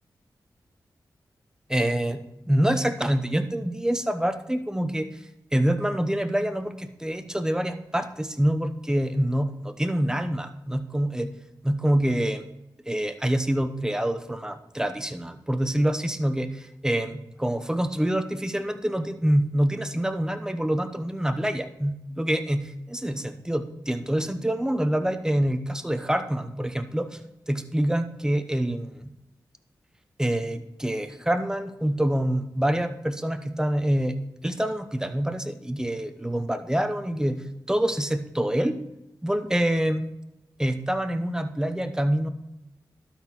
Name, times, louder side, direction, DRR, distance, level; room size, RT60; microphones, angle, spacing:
voice 1, 1.7-5.1 5.5-11.3 11.6-12.4 12.9-27.2 27.5-29.1 30.2-34.2 34.4-38.8 39.2-40.0 40.6-42.3, right 1 dB, 10° right, 9 dB, 0.8 m, -26 dB
12.0 x 4.4 x 4.4 m, 0.86 s
cardioid pair, 45°, 8 cm